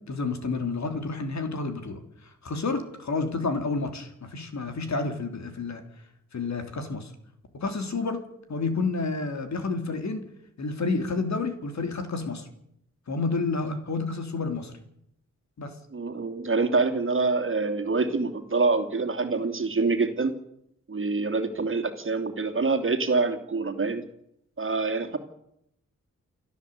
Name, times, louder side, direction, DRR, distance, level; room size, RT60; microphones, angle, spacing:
voice 1, 0.1-2.0 2.4-5.8 6.3-7.1 7.5-8.2 8.5-10.2 10.6-12.5 13.1-14.7 15.6-15.7, left 3 dB, 65° left, 7 dB, 3.3 m, -30 dB
voice 2, 15.9-20.4 20.9-24.0 24.6-25.2, right 3 dB, 40° right, 6 dB, 2.7 m, -26 dB
29.5 x 12.5 x 8.3 m, 0.77 s
wide cardioid pair, 115°, 31 cm